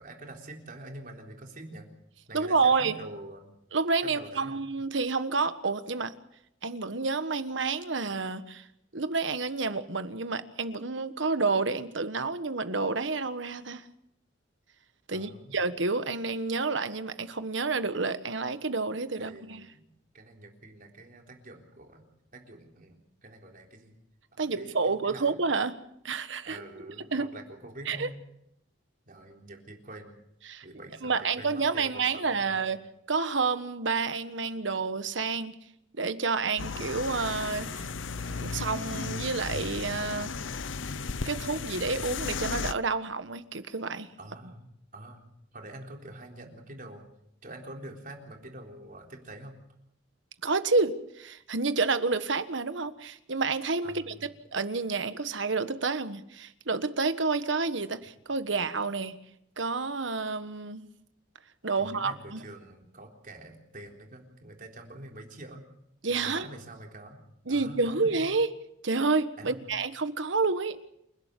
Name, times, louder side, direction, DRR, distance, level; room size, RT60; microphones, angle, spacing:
voice 1, 0.0-1.9 2.3-3.5 4.0-4.7 15.1-15.6 19.1-19.9 20.1-22.1 22.3-23.9 24.3-25.4 26.4-28.2 29.1-30.3 30.6-32.7 44.2-44.7 44.9-45.2 45.5-47.1 47.4-49.6 53.8-54.3 61.7-65.6 66.1-67.2 67.5-68.3 69.4-69.7, right 1 dB, 45° right, 2 dB, 3.9 m, -46 dB
voice 2, 2.3-3.0 3.7-6.1 6.6-8.6 8.9-13.8 15.1-19.7 24.4-25.7 26.0-26.6 27.1-27.3 27.9-28.1 30.5-30.6 31.0-32.8 33.1-35.5 36.0-37.9 38.2-40.3 41.2-44.1 50.4-59.1 59.6-60.9 61.6-62.4 66.0-66.5 67.5-68.5 68.8-70.8, right 4 dB, 75° right, 11 dB, 1.4 m, -29 dB
sound 1, 36.6-42.7, left 4 dB, 80° left, 0.8 m, -35 dB
28.5 x 12.0 x 8.3 m, 0.78 s
head